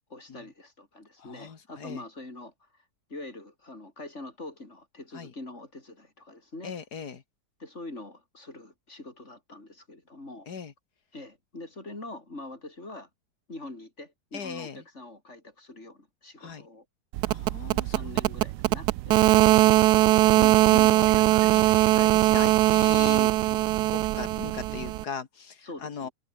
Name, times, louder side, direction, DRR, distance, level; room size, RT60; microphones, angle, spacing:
voice 1, 0.1-2.5 3.1-6.7 7.6-10.5 11.1-13.1 13.5-16.9 17.8-19.9 20.2-20.4 25.6-26.1, left 2 dB, 45° left, 5.8 m, -44 dB
voice 2, 1.2-2.0 5.1-5.3 6.6-7.2 10.5-10.7 14.3-14.8 16.4-16.6 17.3-18.1 19.8-23.7 23.9-26.1, left 6 dB, 85° left, 2.4 m, -39 dB
sound 1, 17.1-25.0, right 16 dB, 90° right, 1.1 m, -21 dB
omnidirectional pair, 1.7 m